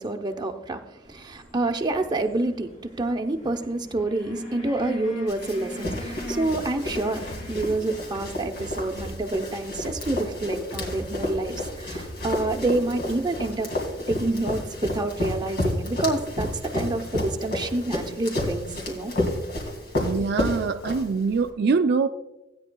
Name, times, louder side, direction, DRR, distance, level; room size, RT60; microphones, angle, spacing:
voice 1, 0.0-13.7 14.1-16.5 16.7-19.1 20.0-20.1, right 2 dB, 20° right, 4 dB, 0.7 m, -28 dB
sound 1, 1.1-18.2, left 1 dB, 40° left, 2.4 m, -44 dB
Run, 5.3-21.4, left 1 dB, 60° left, 2.7 m, -31 dB
sound 2, 6.4-13.2, equal, 75° left, 1.6 m, -41 dB
voice 2, 20.0-22.1, right 4 dB, 55° right, 7 dB, 0.4 m, -23 dB
16.5 x 9.6 x 2.3 m, 1.0 s
head